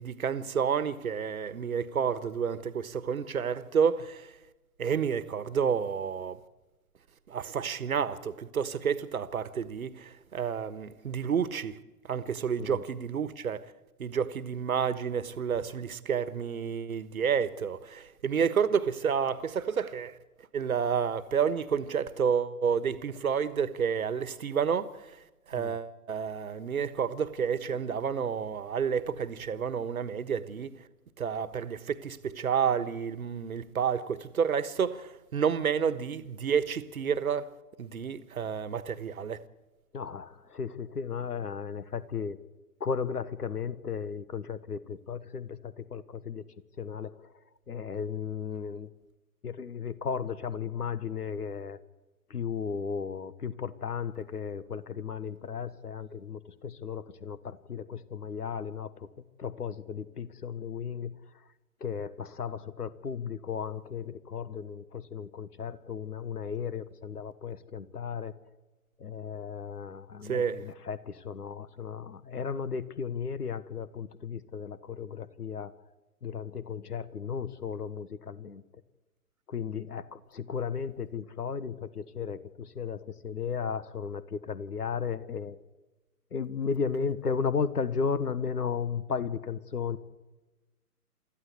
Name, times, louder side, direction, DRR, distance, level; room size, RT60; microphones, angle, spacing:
voice 1, 0.0-4.3 4.8-6.4 7.3-11.8 12.1-13.7 14.0-20.2 20.5-25.2 25.5-30.9 31.2-37.5 37.8-39.4 70.2-70.6, right 7 dB, 65° right, 1.4 m, -30 dB
voice 2, 39.9-42.4 42.8-46.5 46.8-47.3 47.7-48.9 49.4-51.8 52.3-59.1 59.4-61.4 61.8-68.3 69.0-75.7 76.2-78.6 79.5-85.6 86.3-90.0, left 6 dB, 75° left, 1.3 m, -35 dB
25.0 x 14.5 x 8.2 m
figure-of-eight pair, 130°, 46 cm